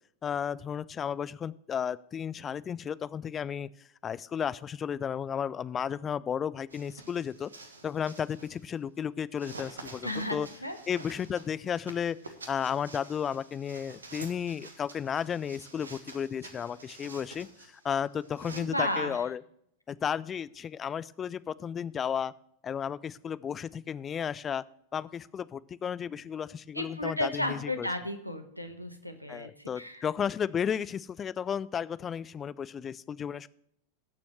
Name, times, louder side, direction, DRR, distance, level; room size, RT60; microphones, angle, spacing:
voice 1, 0.2-3.7 4.0-7.5 7.8-10.5 10.9-12.2 12.5-19.4 19.9-22.3 22.6-24.6 24.9-27.9 29.3-33.5, left 8 dB, 25° left, 18 dB, 0.4 m, -33 dB
sound 1, 6.7-8.7 9.3-18.6, right 3 dB, 75° right, 1.3 m, -48 dB
voice 2, 10.0-10.4 10.6-10.8 18.5-19.3 26.7-30.0, left 1 dB, 90° right, 8 dB, 1.2 m, -33 dB
18.5 x 7.0 x 3.1 m, 0.72 s
figure-of-eight pair, 90°, 0 cm